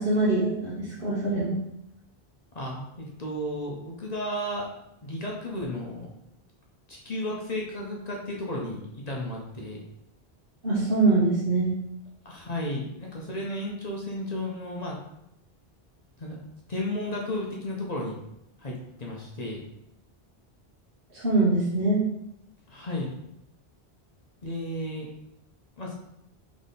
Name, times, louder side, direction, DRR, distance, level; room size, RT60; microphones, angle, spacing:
voice 1, 0.0-1.6 10.6-11.7 21.1-22.0, right 2 dB, 60° right, -8 dB, 1.6 m, -23 dB
voice 2, 2.5-4.7 5.0-6.1 6.9-9.8 12.2-15.0 16.2-16.4 16.7-18.2 18.6-19.6 22.7-23.1 24.4-25.1 25.8-25.9, left 1 dB, 45° left, -2 dB, 0.8 m, -33 dB
3.7 x 3.6 x 4.0 m, 0.83 s
omnidirectional pair, 1.0 m